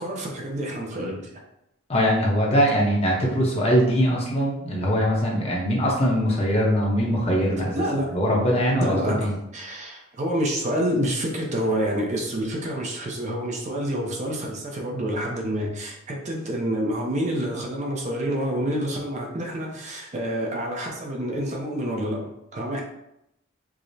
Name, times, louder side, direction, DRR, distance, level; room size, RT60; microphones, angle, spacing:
voice 1, 0.0-1.4 7.7-8.1 8.8-22.8, right 1 dB, 35° right, 0 dB, 0.5 m, -28 dB
voice 2, 1.9-7.8 8.1-9.3, equal, 30° left, -3 dB, 0.7 m, -22 dB
4.7 x 2.0 x 2.6 m, 0.84 s
head